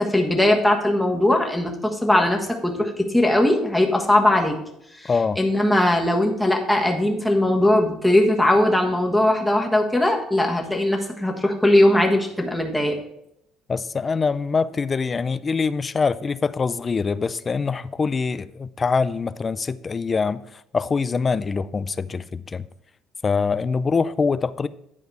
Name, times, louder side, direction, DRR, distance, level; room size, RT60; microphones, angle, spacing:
voice 1, 0.0-4.6 5.0-5.1 5.4-12.9, left 1 dB, 5° left, 1.4 m, -19 dB
voice 2, 5.1-5.4 13.7-20.4 20.7-22.6 23.2-24.7, left 5 dB, 25° left, 0.3 m, -24 dB
10.5 x 4.9 x 4.6 m
cardioid pair, 125°, 0 cm